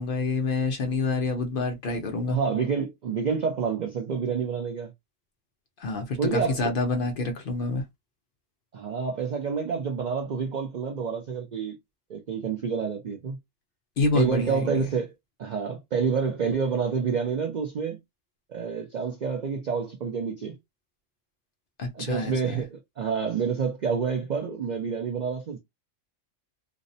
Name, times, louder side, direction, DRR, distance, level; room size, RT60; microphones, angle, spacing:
voice 1, 0.0-2.4 5.8-7.8 14.0-14.9 21.8-22.6, left 3 dB, 60° left, 0.6 m, -27 dB
voice 2, 2.3-4.9 6.2-6.7 8.7-11.8 12.1-13.4 14.1-15.1 15.4-18.0 18.5-20.6 21.9-25.6, right 6 dB, 75° right, 0.4 m, -28 dB
2.6 x 2.0 x 2.6 m
omnidirectional pair, 1.3 m